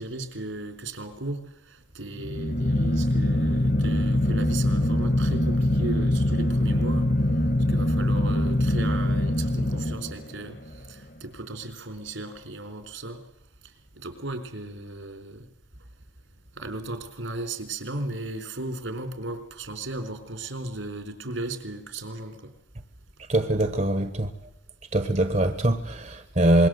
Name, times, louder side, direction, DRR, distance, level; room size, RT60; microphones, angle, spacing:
voice 1, 0.0-7.1 7.7-10.6 10.9-13.2 14.0-15.5 16.6-22.5, right 2 dB, 85° right, 4.3 m, -36 dB
sound 1, 2.1-10.5, left 1 dB, 50° left, 2.4 m, -23 dB
voice 2, 23.3-24.3 24.9-26.7, right 1 dB, 40° right, 1.4 m, -23 dB
26.0 x 22.5 x 7.9 m
head